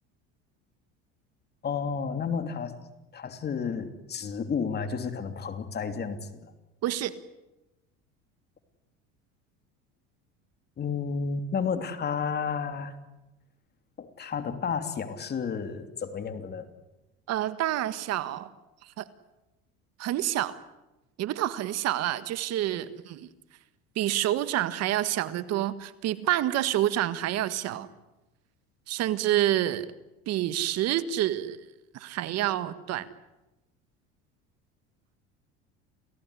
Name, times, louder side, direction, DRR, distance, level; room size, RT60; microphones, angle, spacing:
voice 1, 1.6-2.8 3.1-6.5 10.8-13.0 14.0-16.7, left 6 dB, 35° left, 8 dB, 3.1 m, -31 dB
voice 2, 6.8-7.1 17.3-18.5 19.0-19.1 20.0-20.6 21.2-23.3 23.9-27.9 28.9-29.9 30.3-31.6 31.9-33.1, right 13 dB, 55° right, 13 dB, 1.6 m, -28 dB
29.0 x 17.5 x 9.9 m, 0.99 s
supercardioid pair, 110°, 31 cm